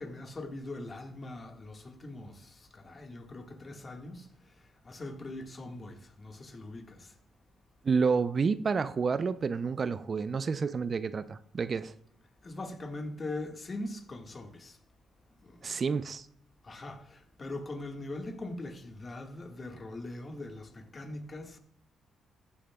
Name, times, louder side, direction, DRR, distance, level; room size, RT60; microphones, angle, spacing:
voice 1, 0.0-7.1 12.4-14.8 15.4-15.7 16.6-21.6, left 2 dB, 40° left, 1.7 m, -42 dB
voice 2, 7.8-11.9 15.6-16.3, right 5 dB, 45° right, 0.5 m, -29 dB
14.0 x 8.8 x 2.3 m
cardioid pair, 70°, 0 cm